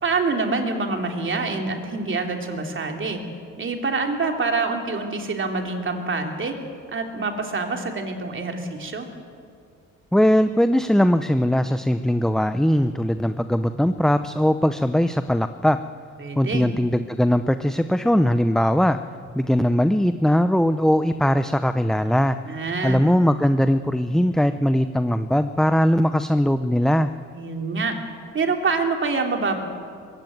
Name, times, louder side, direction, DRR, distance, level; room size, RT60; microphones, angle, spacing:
voice 1, 0.0-3.2 3.6-6.5 6.9-9.1 16.2-16.7 22.4-23.0 27.3-28.0 28.3-29.6, right 4 dB, 40° right, 3 dB, 3.2 m, -26 dB
voice 2, 10.1-15.8 16.4-19.0 19.3-22.4 22.8-27.1, equal, ahead, 10 dB, 0.6 m, -20 dB
21.0 x 16.5 x 9.3 m, 2.3 s
cardioid pair, 90°, 30 cm